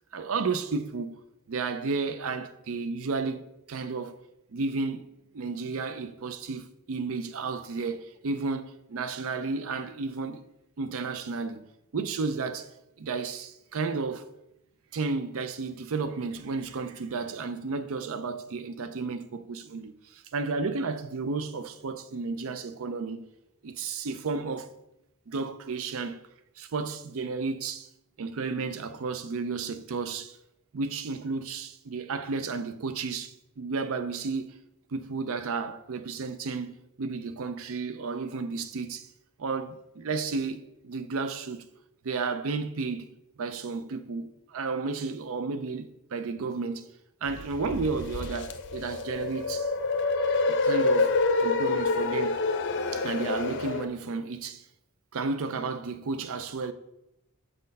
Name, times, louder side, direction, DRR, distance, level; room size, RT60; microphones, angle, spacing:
voice 1, 0.1-1.2 1.5-4.2 4.5-5.1 5.3-10.4 10.8-11.6 11.9-12.7 13.0-14.2 14.9-23.3 23.6-24.7 25.3-26.2 26.6-27.9 28.2-30.4 30.7-34.5 34.9-39.1 39.4-41.7 42.0-43.1 43.4-46.9 47.2-49.7 50.5-52.4 52.9-54.7 55.1-56.7, right 4 dB, 65° right, 0.5 m, -32 dB
sound 1, 47.3-53.9, left 3 dB, 60° left, 0.6 m, -27 dB
6.5 x 4.2 x 5.4 m
head